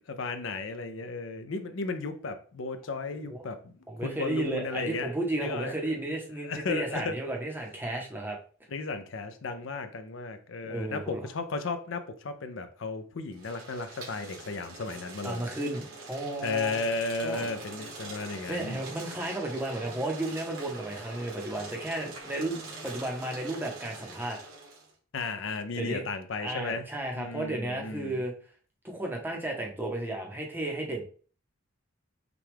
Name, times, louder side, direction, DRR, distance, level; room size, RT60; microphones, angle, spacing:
voice 1, 0.1-3.7 4.0-5.1 5.4-5.7 6.4-7.2 8.7-15.5 16.4-18.8 25.1-26.8 27.2-28.2, left 3 dB, 65° left, 0.5 m, -34 dB
voice 2, 3.9-8.4 10.6-11.2 15.2-16.9 17.2-17.4 18.1-24.4 25.8-26.0 26.4-28.3 28.8-31.0, right 1 dB, 10° right, 0.7 m, -33 dB
sound 1, 13.3-24.9, right 3 dB, 75° right, 1.5 m, -44 dB
5.9 x 2.3 x 3.5 m
head